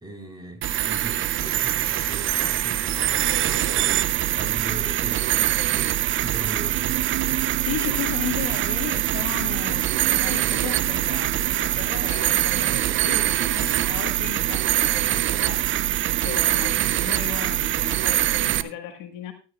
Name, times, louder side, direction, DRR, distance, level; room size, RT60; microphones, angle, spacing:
voice 1, 0.0-3.9 4.3-6.0 6.2-7.1, right 1 dB, 10° right, 3 dB, 4.1 m, -38 dB
sound 1, 0.6-18.6, right 13 dB, 35° right, 0.5 m, -23 dB
sound 2, 4.8-18.7, right 10 dB, 50° right, 1.0 m, -38 dB
voice 2, 7.7-15.6 16.2-19.3, left 10 dB, 55° left, 5 dB, 1.6 m, -35 dB
13.5 x 12.5 x 2.4 m, 0.35 s
supercardioid pair, 100°, 36 cm